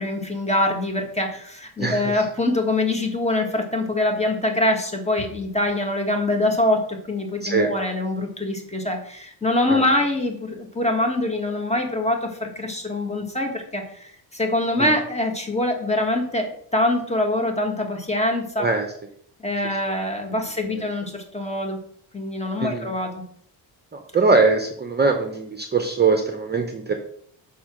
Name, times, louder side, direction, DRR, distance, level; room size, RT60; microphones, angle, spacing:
voice 1, 0.0-6.8 7.1-18.7 19.4-21.8 22.1-23.1, left 1 dB, 15° left, 3 dB, 1.8 m, -24 dB
voice 2, 1.8-2.2 7.4-7.7 9.7-9.8 14.8-14.9 18.6-18.9 20.7-20.9 22.6-22.9 23.9-26.9, right 4 dB, 25° right, 5 dB, 0.9 m, -22 dB
7.0 x 4.6 x 6.2 m, 0.64 s
cardioid pair, 105°, 43 cm